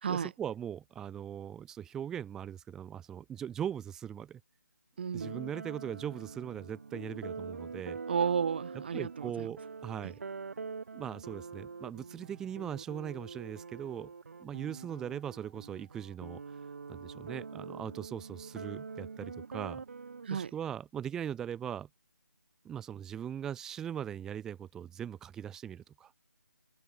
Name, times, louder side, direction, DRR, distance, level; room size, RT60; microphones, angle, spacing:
voice 1, 0.1-4.4 5.1-8.0 8.9-10.2 10.9-14.1 14.4-16.6 16.9-19.8 20.3-21.9 22.7-26.1, right 9 dB, 5° right, 1.8 m, -40 dB
voice 2, 5.0-5.4 8.1-9.5 20.2-20.5, right 7 dB, 30° right, 2.0 m, -32 dB
sound 1, 5.2-20.3, right 5 dB, 50° right, 6.7 m, -44 dB
figure-of-eight pair, 170°, 10 cm